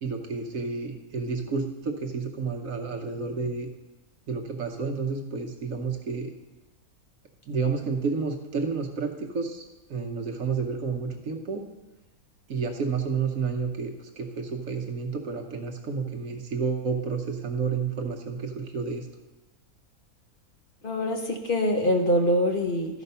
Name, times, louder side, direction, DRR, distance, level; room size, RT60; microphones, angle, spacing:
voice 1, 0.0-3.7 4.3-6.3 7.5-9.6 9.9-11.6 12.5-19.1, right 5 dB, 65° right, 3 dB, 1.2 m, -30 dB
voice 2, 20.8-23.0, equal, 40° left, 3 dB, 1.0 m, -24 dB
13.0 x 5.1 x 5.5 m, 1.1 s
omnidirectional pair, 1.6 m